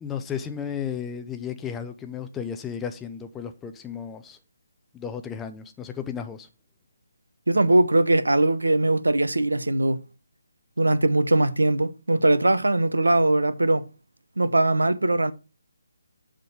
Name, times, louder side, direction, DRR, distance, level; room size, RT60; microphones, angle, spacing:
voice 1, 0.0-4.4 4.9-6.5, left 7 dB, 10° left, 0.5 m, -34 dB
voice 2, 7.5-10.0 10.8-13.9 14.4-15.3, right 2 dB, 70° right, 0.8 m, -21 dB
7.6 x 3.7 x 6.5 m
figure-of-eight pair, 145°, 0 cm